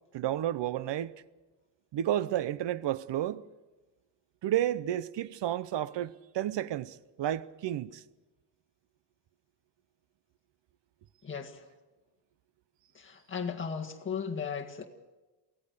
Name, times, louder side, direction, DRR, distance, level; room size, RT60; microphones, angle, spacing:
voice 1, 0.1-1.1 1.9-3.4 4.4-8.0, right 12 dB, 80° right, 0.7 m, -31 dB
voice 2, 11.2-11.7 12.9-14.8, left 6 dB, 30° left, 1.8 m, -36 dB
24.0 x 17.0 x 6.7 m
wide cardioid pair, 175°, 42 cm